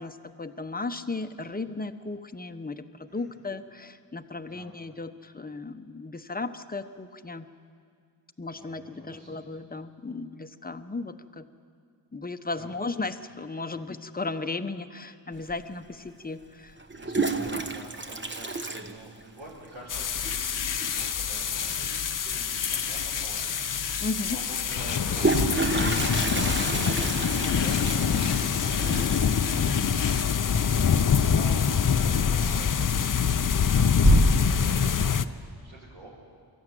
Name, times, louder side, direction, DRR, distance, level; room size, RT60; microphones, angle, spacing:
voice 1, 0.0-7.5 8.4-11.4 12.1-16.7 24.0-24.4, left 3 dB, 20° left, 9 dB, 1.0 m, -35 dB
voice 2, 3.1-3.4 4.4-4.8 8.5-9.4 12.6-12.8 13.7-13.8 15.3-15.5 16.9-23.4 24.3-28.5 28.8-29.1 30.4-32.7 33.5-36.1, right 1 dB, 85° right, -9 dB, 5.8 m, -47 dB
Toilet flush, 15.5-15.6 16.8-19.6 19.9-20.0 20.3-20.4 20.6-21.0 22.7-22.8 23.2-23.3 24.8-31.5 31.8-32.3 32.7-33.2 33.6-34.6, right 2 dB, 25° right, 1.2 m, -28 dB
sound 1, 19.9-35.2, left 7 dB, 45° left, 0.7 m, -25 dB
sound 2, 20.2-30.2, left 7 dB, 70° left, 1.2 m, -37 dB
23.0 x 14.0 x 9.2 m, 2.2 s
cardioid pair, 70°, 44 cm